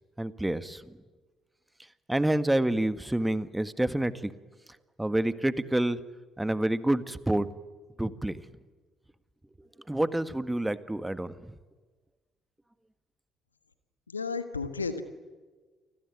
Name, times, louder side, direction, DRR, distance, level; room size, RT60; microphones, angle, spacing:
voice 1, 0.2-1.0 2.1-4.3 5.0-6.0 6.4-7.5 8.0-8.4 9.9-11.5, right 1 dB, 10° right, 13 dB, 1.7 m, -28 dB
voice 2, 14.1-15.0, left 4 dB, 90° left, 11 dB, 1.4 m, -32 dB
29.5 x 21.0 x 9.7 m, 1.3 s
figure-of-eight pair, 45°, 0 cm